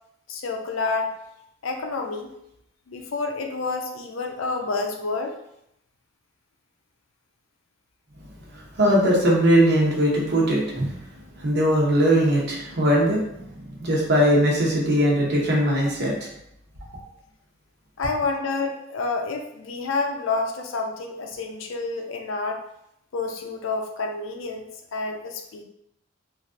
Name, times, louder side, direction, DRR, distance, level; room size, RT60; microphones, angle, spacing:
voice 1, 0.3-1.1 1.6-2.3 2.9-5.4 18.0-22.6 23.1-25.6, left 3 dB, 80° left, 3 dB, 0.5 m, -29 dB
voice 2, 8.8-10.9 11.4-13.2 13.8-16.1, equal, 60° right, -3 dB, 0.9 m, -20 dB
3.1 x 2.5 x 2.5 m, 0.77 s
head